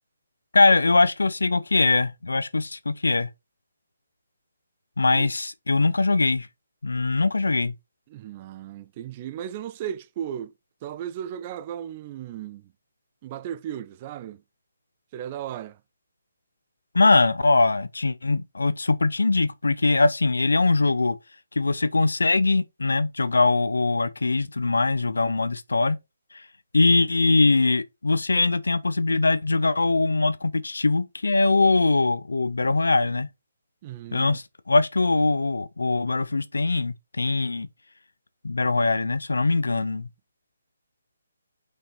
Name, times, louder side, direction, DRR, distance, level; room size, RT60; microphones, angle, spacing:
voice 1, 0.5-3.3 5.0-6.5 6.8-7.7 16.9-21.2 21.6-26.0 26.3-26.4 26.7-33.3 34.1-37.7 38.4-40.1, left 3 dB, 65° left, 0.9 m, -22 dB
voice 2, 8.1-10.5 10.8-12.7 13.2-14.4 15.1-15.8 26.9-27.1 33.8-34.4, right 10 dB, 25° right, 0.6 m, -36 dB
5.6 x 5.6 x 4.2 m
figure-of-eight pair, 140°, 0 cm